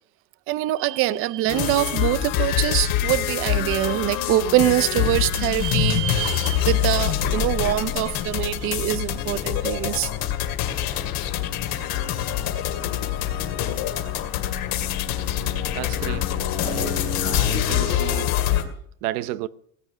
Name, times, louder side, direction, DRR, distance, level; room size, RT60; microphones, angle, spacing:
voice 1, 0.5-10.1, right 15 dB, 30° right, 0.5 m, -24 dB
sound 1, 1.5-18.6, left 11 dB, 50° left, 2.4 m, -25 dB
voice 2, 15.7-16.2 16.6-17.0 17.2-18.3 19.0-19.5, right 16 dB, 80° right, 0.8 m, -32 dB
18.5 x 8.9 x 6.3 m
cardioid pair, 160°, 44 cm